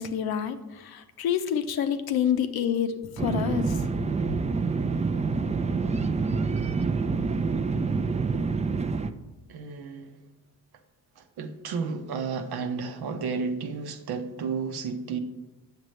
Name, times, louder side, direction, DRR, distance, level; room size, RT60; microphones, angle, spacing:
voice 1, 0.0-3.8, left 8 dB, 70° left, 9 dB, 0.7 m, -28 dB
sound 1, 3.2-9.1, right 4 dB, 20° right, 0.4 m, -27 dB
voice 2, 9.5-10.2 11.2-15.2, right 5 dB, 70° right, 6 dB, 0.9 m, -32 dB
7.7 x 6.6 x 3.2 m, 1.0 s
supercardioid pair, 60°, 39 cm